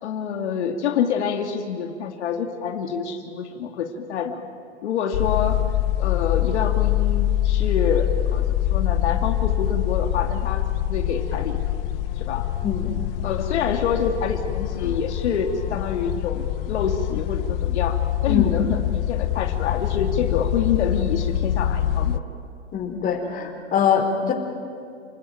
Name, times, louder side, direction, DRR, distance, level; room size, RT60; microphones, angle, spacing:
voice 1, 0.0-4.4 4.8-5.6 6.0-8.4 8.7-11.6 12.2-12.5 13.2-22.2 24.2-24.3, left 7 dB, 70° left, 4 dB, 2.5 m, -27 dB
sound 1, 5.1-22.2, left 12 dB, 50° left, 1.0 m, -24 dB
voice 2, 18.2-18.6 22.7-24.3, left 7 dB, 25° left, 3 dB, 4.4 m, -23 dB
29.5 x 20.5 x 9.3 m, 2.4 s
hypercardioid pair, 130°, 36 cm